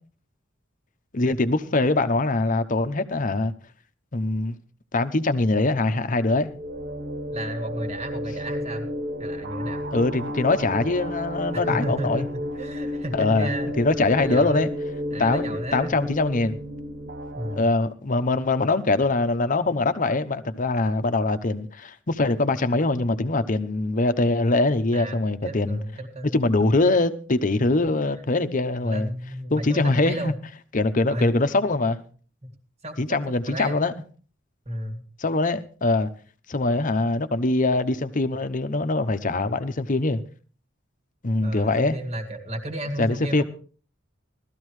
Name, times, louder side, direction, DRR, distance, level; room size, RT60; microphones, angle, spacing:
voice 1, 1.1-3.5 4.1-4.6 4.9-6.5 9.9-12.2 13.1-13.5 13.8-14.7 15.2-16.6 17.5-25.8 26.3-29.1 29.5-30.3 30.7-32.0 33.0-33.9 35.2-36.1 36.5-40.2 41.2-42.0 43.0-43.4, left 2 dB, 45° left, 0.9 m, -23 dB
sound 1, 6.0-17.6, equal, 55° right, 1.0 m, -32 dB
voice 2, 7.3-8.9 9.2-9.8 11.5-13.7 14.1-14.8 15.1-16.0 17.3-17.7 24.9-25.2 25.4-26.5 28.8-30.3 31.1-31.3 32.4-32.5 32.8-33.2 33.4-33.8 34.7-35.0 41.4-43.4, right 1 dB, 35° right, 2.0 m, -33 dB
17.5 x 13.5 x 3.2 m
head